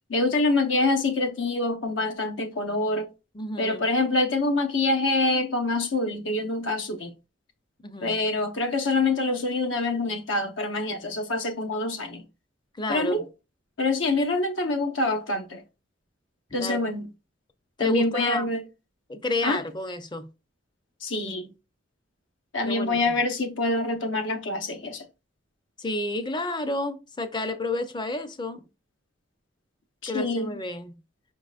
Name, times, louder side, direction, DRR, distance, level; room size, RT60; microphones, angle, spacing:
voice 1, 0.1-3.1 3.6-7.1 8.0-12.2 12.9-13.2 13.8-15.6 16.5-17.1 17.8-18.6 19.4-19.6 21.0-21.5 22.5-25.0 30.0-30.5, left 2 dB, 75° left, 1.0 m, -26 dB
voice 2, 3.3-3.9 7.8-8.3 12.8-13.2 16.5-16.8 17.8-18.5 19.1-20.3 22.6-23.2 25.8-28.6 30.1-31.0, left 2 dB, 25° left, 0.5 m, -31 dB
5.4 x 3.8 x 2.4 m
head